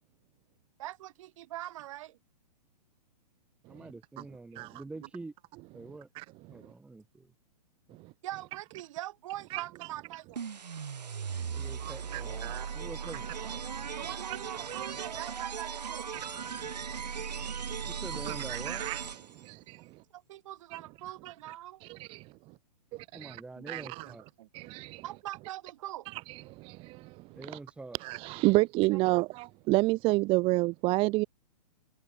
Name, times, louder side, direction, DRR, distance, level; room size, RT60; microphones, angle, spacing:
voice 1, 0.8-2.2 5.0-5.1 8.2-10.5 14.0-16.1 20.1-21.8 23.6-24.1 24.4-24.5 25.0-26.1 28.9-29.2, right 15 dB, 50° right, 6.2 m, -42 dB
voice 2, 3.7-5.3 5.7-6.1 6.5-7.3 7.9-8.0 11.5-13.3 17.9-18.8 23.1-24.2 27.3-28.0, right 3 dB, 5° right, 1.2 m, -45 dB
voice 3, 6.1-6.7 7.9-8.1 9.5-9.9 11.3-12.7 13.8-14.0 14.3-14.4 14.7-15.1 16.1-17.9 18.3-19.0 19.3-20.0 20.7-20.8 21.2-21.3 21.8-22.5 22.9-23.4 23.7-24.1 24.5-25.0 26.1-27.6 28.0-31.3, right 22 dB, 25° right, 0.7 m, -32 dB
sound 1, 10.3-19.5, right 6 dB, 80° right, 1.3 m, -38 dB
hypercardioid pair, 120°, 21 cm